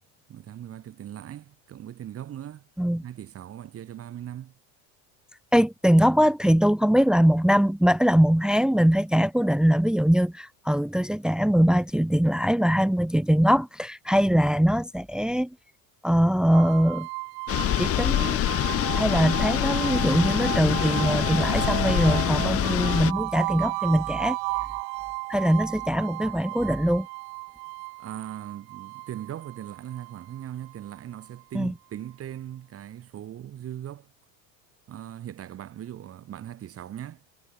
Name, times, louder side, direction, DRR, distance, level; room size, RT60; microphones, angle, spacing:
voice 1, 0.3-2.7 3.0-4.5 28.0-34.1 34.9-37.2, right 11 dB, 35° right, 3.3 m, -39 dB
voice 2, 5.5-15.5 16.0-17.1 17.8-18.5 18.9-24.4 25.3-27.1 31.5-31.7, equal, ahead, 1.2 m, -22 dB
sound 1, 16.5-31.4, right 40 dB or more, 65° right, 1.4 m, -34 dB
sound 2, 17.5-23.1, left 13 dB, 35° left, 1.3 m, -25 dB
supercardioid pair, 135°, 40 cm